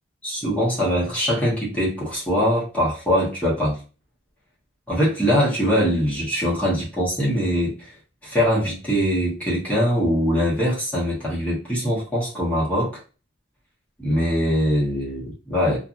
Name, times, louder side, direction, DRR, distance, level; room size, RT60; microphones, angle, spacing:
voice 1, 0.2-3.8 4.9-7.9 8.2-13.0 14.0-15.8, equal, 5° left, -7 dB, 1.1 m, -22 dB
2.7 x 2.5 x 2.5 m, 0.34 s
head